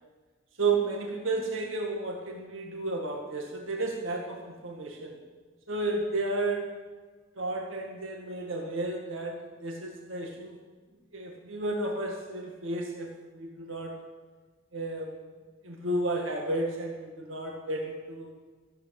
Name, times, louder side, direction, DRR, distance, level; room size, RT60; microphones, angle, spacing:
voice 1, 0.6-5.2 5.7-6.7 7.4-10.6 11.1-13.9 14.7-15.1 15.6-18.3, right 2 dB, 70° right, 0 dB, 2.0 m, -32 dB
14.0 x 8.4 x 8.9 m, 1.4 s
head